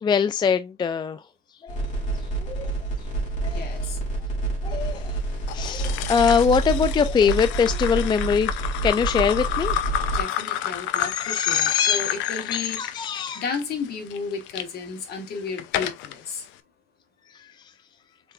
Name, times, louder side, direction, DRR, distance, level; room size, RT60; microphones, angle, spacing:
voice 1, 0.0-1.2 1.6-1.8 2.4-2.7 3.4-3.9 4.6-5.1 5.5-8.6 8.8-9.8 11.0-12.1 12.5-13.4, left 6 dB, 25° left, 0.3 m, -23 dB
sound 1, 1.7-10.2, right 3 dB, 40° left, 2.9 m, -28 dB
voice 2, 3.5-4.0 10.1-12.8 13.4-16.5, left 5 dB, 55° left, 1.9 m, -33 dB
sound 2, 5.5-14.7 15.2-16.2, left 12 dB, 85° left, 0.6 m, -30 dB
4.4 x 3.8 x 2.6 m
cardioid pair, 120°, 19 cm